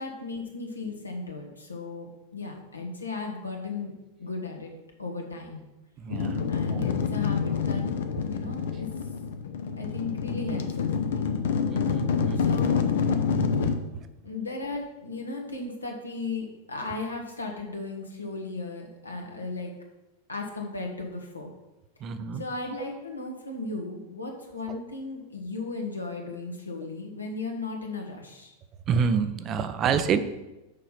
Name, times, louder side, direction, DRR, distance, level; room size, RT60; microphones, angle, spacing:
voice 1, 0.0-3.9 4.2-4.7 5.0-5.7 6.5-7.9 8.2-8.9 9.8-11.2 12.3-12.8 14.2-19.7 20.3-21.5 22.3-28.5, left 3 dB, 80° left, 1 dB, 1.5 m, -36 dB
voice 2, 6.0-6.4 6.7-6.9 11.7-12.4 13.6-13.7 22.0-22.4 24.7-24.8 28.9-30.2, right 6 dB, 30° right, 11 dB, 0.5 m, -27 dB
sound 1, 6.1-13.7, left 6 dB, 60° left, 0.7 m, -27 dB
6.6 x 5.1 x 5.7 m, 1.0 s
figure-of-eight pair, 90°, 0 cm